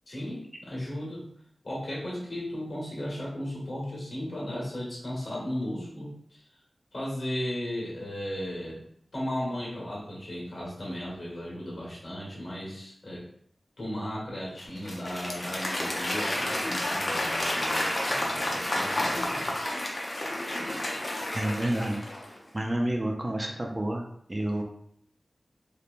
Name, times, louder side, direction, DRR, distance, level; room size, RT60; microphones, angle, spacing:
voice 1, 0.1-1.2 1.6-6.4 6.9-8.8 9.1-13.2 13.8-19.5, left 1 dB, 70° left, -6 dB, 1.3 m, -35 dB
Applause / Crowd, 14.6-22.4, left 1 dB, 45° left, 0.5 m, -30 dB
voice 2, 21.3-22.0 22.5-24.6, right 1 dB, 25° right, 1 dB, 0.4 m, -29 dB
3.0 x 2.2 x 2.4 m, 0.68 s
wide cardioid pair, 85°, 0 cm